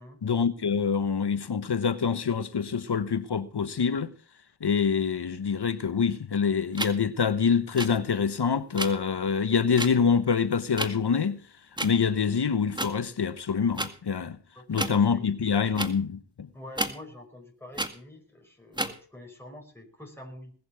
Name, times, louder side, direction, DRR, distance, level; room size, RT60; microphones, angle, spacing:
voice 1, 0.2-4.1 4.6-11.4 11.8-14.4 14.7-16.5, left 6 dB, 65° left, 1.1 m, -26 dB
sound 1, 6.8-6.9 7.7-7.9 8.7-8.9 9.8-9.9 10.7-10.9 11.8-11.9 12.7-12.9 13.7-13.9 14.7-15.0 15.8-15.9 16.8-16.9 17.7-17.9 18.7-18.9, right 1 dB, 10° right, 1.9 m, -30 dB
voice 2, 14.5-15.2 16.5-20.5, left 1 dB, 5° left, 5.1 m, -46 dB
20.5 x 7.0 x 6.9 m
cardioid pair, 45°, 42 cm